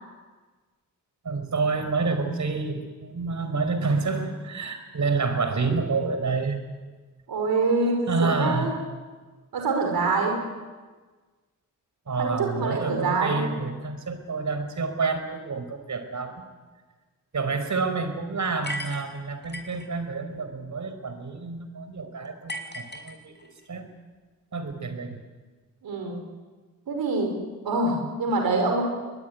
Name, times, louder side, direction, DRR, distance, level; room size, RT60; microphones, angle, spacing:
voice 1, 1.2-6.6 8.1-8.7 12.1-16.4 17.3-23.9 24.5-25.2, right 4 dB, 55° right, 9 dB, 4.8 m, -28 dB
voice 2, 7.3-8.7 9.5-10.4 12.2-13.4 25.8-26.2 26.9-27.3 27.6-28.8, right 3 dB, 85° right, 3 dB, 5.4 m, -25 dB
sound 1, 18.6-19.9 22.5-23.6, equal, 30° left, 5.7 m, -36 dB
23.5 x 20.5 x 9.8 m, 1.4 s
cardioid pair, 65°, 35 cm